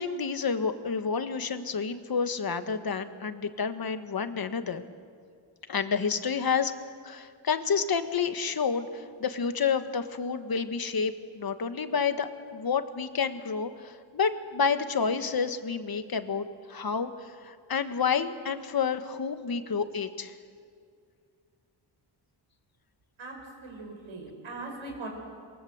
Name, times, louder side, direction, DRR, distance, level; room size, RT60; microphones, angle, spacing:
voice 1, 0.0-4.8 5.7-6.7 7.0-20.3, left 6 dB, 50° left, 9 dB, 1.6 m, -29 dB
voice 2, 23.6-25.1, right 2 dB, 80° right, 1 dB, 6.1 m, -40 dB
28.0 x 22.0 x 7.9 m, 2.2 s
wide cardioid pair, 115°, 47 cm